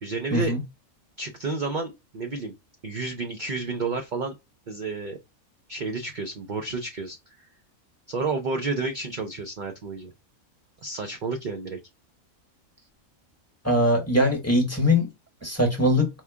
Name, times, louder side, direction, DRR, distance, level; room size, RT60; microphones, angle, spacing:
voice 1, 0.0-0.5 1.2-2.5 2.8-4.3 4.7-5.2 5.7-7.2 8.1-10.1 10.8-11.8, right 3 dB, 55° right, 0.5 m, -30 dB
voice 2, 13.6-15.1 15.4-16.1, left 1 dB, 10° left, 1.0 m, -21 dB
4.7 x 2.3 x 3.4 m
omnidirectional pair, 1.5 m